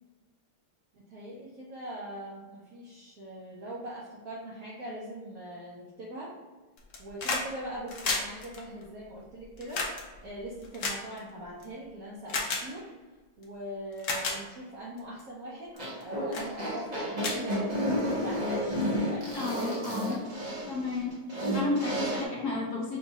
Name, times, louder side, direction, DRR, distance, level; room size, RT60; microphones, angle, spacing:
voice 1, 0.9-6.3 7.0-9.8 10.2-12.9 13.4-15.7 16.0-20.2, right 1 dB, 65° right, -5 dB, 0.9 m, -41 dB
sound 1, 6.8-7.5 7.8-11.6 12.3-12.6 13.4-13.5 13.9-14.4 15.0-15.2 15.8-16.0 16.3-16.5 16.9-17.0 17.2-18.1 19.3-19.4, left 3 dB, 85° left, 0.6 m, -33 dB
sound 2, 15.7-22.2, equal, 45° right, 0.5 m, -31 dB
voice 2, 19.3-20.2 20.7-23.0, left 3 dB, 60° left, -3 dB, 1.1 m, -33 dB
6.1 x 2.3 x 2.8 m, 1.3 s
omnidirectional pair, 2.3 m